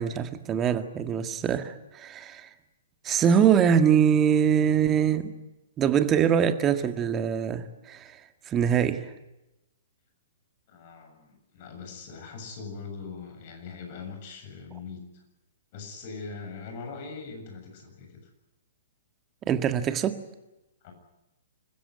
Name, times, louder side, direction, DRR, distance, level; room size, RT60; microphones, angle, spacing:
voice 1, 0.0-2.5 3.0-5.3 5.8-8.1 8.5-9.0 19.5-20.1, right 8 dB, 20° right, 9 dB, 1.8 m, -23 dB
voice 2, 10.7-15.1 15.7-18.1 20.8-20.9, left 4 dB, 45° left, 4 dB, 7.4 m, -41 dB
27.0 x 15.5 x 9.6 m, 0.97 s
figure-of-eight pair, 120°, 0 cm